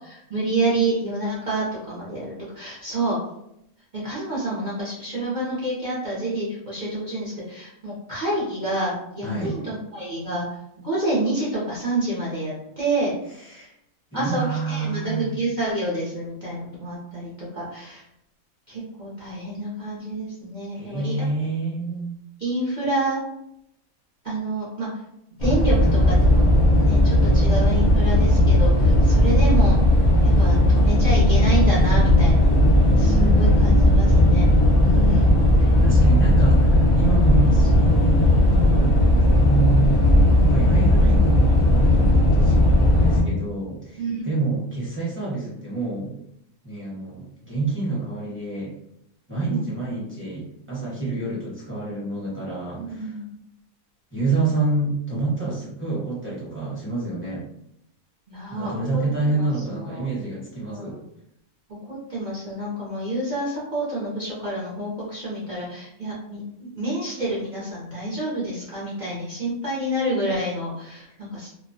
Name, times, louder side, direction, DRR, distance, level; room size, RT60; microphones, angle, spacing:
voice 1, 0.1-3.2 3.9-10.5 10.8-13.1 14.1-18.0 18.7-21.1 22.4-23.2 24.2-24.9 25.4-26.4 26.8-29.8 30.2-32.5 33.0-34.4 34.8-35.3 39.1-39.2 44.0-44.3 49.5-49.7 52.8-53.3 58.3-59.0 59.3-59.5 59.8-60.1 60.7-60.9 61.9-71.5, right 1 dB, 55° right, -7 dB, 0.5 m, -28 dB
voice 2, 9.2-9.6 13.3-13.7 14.1-15.3 20.7-22.1 33.0-34.0 35.8-39.0 39.3-40.0 40.3-46.1 46.6-48.7 49.3-53.2 54.1-57.4 58.5-61.0 71.1-71.2, right 3 dB, 10° right, -9 dB, 0.7 m, -28 dB
sound 1, 25.4-43.2, left 1 dB, 45° left, 0.4 m, -16 dB
2.3 x 2.1 x 2.5 m, 0.78 s
omnidirectional pair, 1.5 m